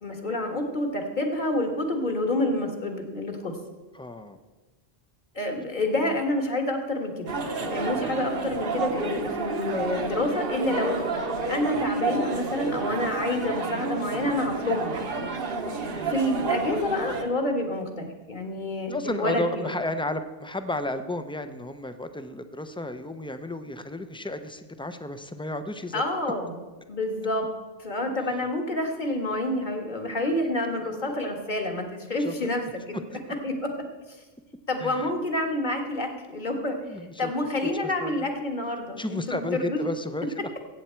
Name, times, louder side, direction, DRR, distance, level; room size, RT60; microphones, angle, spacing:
voice 1, 0.0-3.5 5.3-7.3 7.6-11.0 11.5-14.9 16.1-19.7 25.9-26.5 26.9-27.5 27.8-33.0 33.4-33.7 34.1-34.2 34.7-36.8 37.2-39.8, left 1 dB, 50° left, 3 dB, 1.7 m, -28 dB
voice 2, 3.9-4.4 7.8-8.1 18.9-26.0 30.3-30.4 30.8-31.1 32.2-32.5 33.2-33.3 34.8-35.1 36.4-36.5 36.8-37.3 37.8-38.3 39.0-40.5, left 1 dB, 5° left, 9 dB, 0.4 m, -33 dB
sound 1, 7.3-17.2, right 4 dB, 65° right, 1.2 m, -30 dB
15.0 x 8.4 x 4.5 m, 1.2 s
omnidirectional pair, 1.0 m